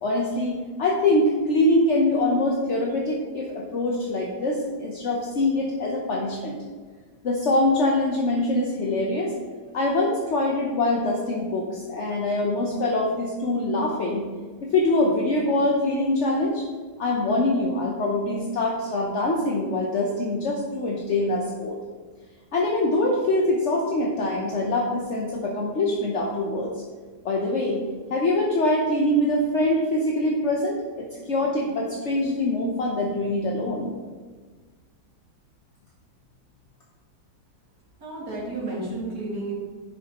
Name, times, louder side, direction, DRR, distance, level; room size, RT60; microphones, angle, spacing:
voice 1, 0.0-6.6 7.2-9.3 9.7-14.3 14.6-16.6 17.0-21.8 22.5-26.8 27.2-27.8 28.1-33.9, left 2 dB, 50° left, -2 dB, 0.9 m, -24 dB
voice 2, 38.0-39.5, right 2 dB, 50° right, -6 dB, 2.7 m, -31 dB
10.0 x 6.3 x 3.0 m, 1.5 s
omnidirectional pair, 2.1 m